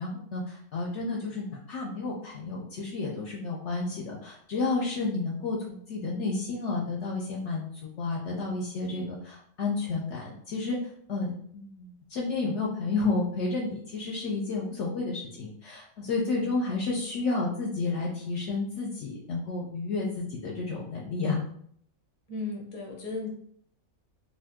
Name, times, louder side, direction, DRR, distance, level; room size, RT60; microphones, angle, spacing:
voice 1, 0.0-21.4, left 3 dB, 65° left, -2 dB, 0.8 m, -31 dB
voice 2, 22.3-23.3, left 3 dB, 30° left, -2 dB, 0.7 m, -35 dB
2.6 x 2.5 x 3.5 m, 0.64 s
omnidirectional pair, 1.5 m